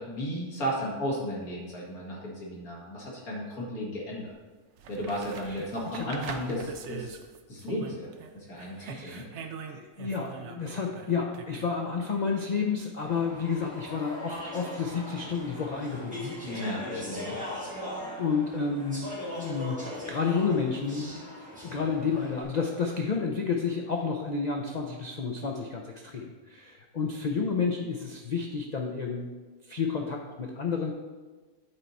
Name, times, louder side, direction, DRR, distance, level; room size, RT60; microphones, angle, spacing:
voice 1, 0.0-4.3 4.9-7.2 7.5-9.2 16.4-17.4, equal, 80° left, -4 dB, 2.2 m, -34 dB
sound 1, 4.3-4.4 4.8-8.3 8.6-11.7 14.3-14.4, right 6 dB, 60° right, 0.8 m, -43 dB
voice 2, 8.8-9.3 9.7-16.4 18.2-21.2 21.6-29.3 29.6-30.9, left 5 dB, 55° left, 1 dB, 0.5 m, -31 dB
Speech / Chatter, 13.0-22.4, left 1 dB, 5° right, 1.9 m, -39 dB
8.7 x 4.5 x 4.1 m, 1.3 s
omnidirectional pair, 1.5 m